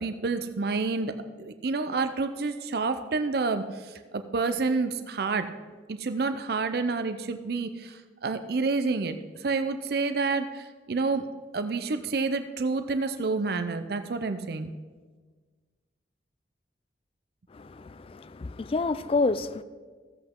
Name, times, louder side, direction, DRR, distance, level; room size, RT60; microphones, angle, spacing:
voice 1, 0.0-5.5 5.9-11.3 11.5-14.7, right 4 dB, 60° right, 0.5 m, -29 dB
voice 2, 17.5-19.6, left 3 dB, 30° left, 0.3 m, -29 dB
14.5 x 7.9 x 3.7 m
head